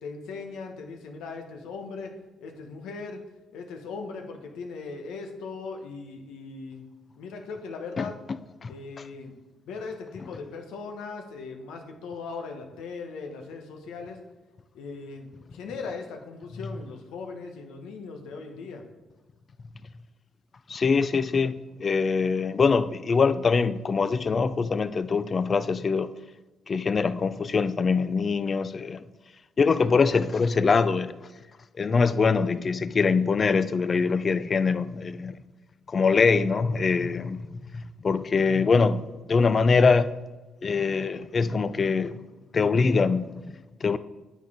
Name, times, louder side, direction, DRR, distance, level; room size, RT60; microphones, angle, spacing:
voice 1, 0.0-2.1 2.4-3.2 3.5-6.8 7.2-8.1 8.7-9.3 9.7-14.2 14.7-18.8, left 4 dB, 90° left, 1.0 m, -39 dB
voice 2, 20.7-26.1 26.7-29.0 29.6-31.2 31.8-35.4 35.9-40.1 40.6-42.1 42.5-44.0, left 5 dB, 40° left, 0.4 m, -23 dB
9.2 x 3.9 x 4.8 m
cardioid pair, 90°, 0 cm